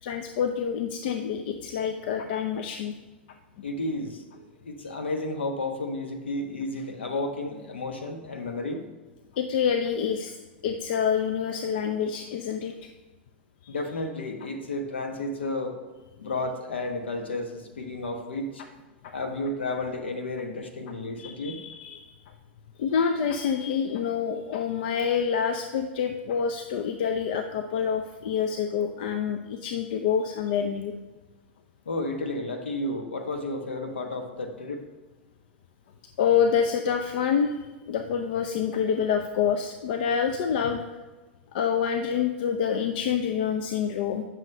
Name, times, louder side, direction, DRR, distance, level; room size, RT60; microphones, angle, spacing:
voice 1, 0.0-3.0 9.3-10.4 10.6-12.9 13.6-13.7 19.0-19.1 21.2-22.1 22.8-30.9 36.2-41.0 41.5-44.2, left 7 dB, 60° left, 7 dB, 0.5 m, -27 dB
voice 2, 3.6-8.8 13.7-15.8 16.2-18.6 19.1-21.6 31.8-34.8, left 2 dB, 80° left, 5 dB, 1.1 m, -32 dB
8.9 x 6.2 x 3.3 m, 1.2 s
hypercardioid pair, 100°, 6 cm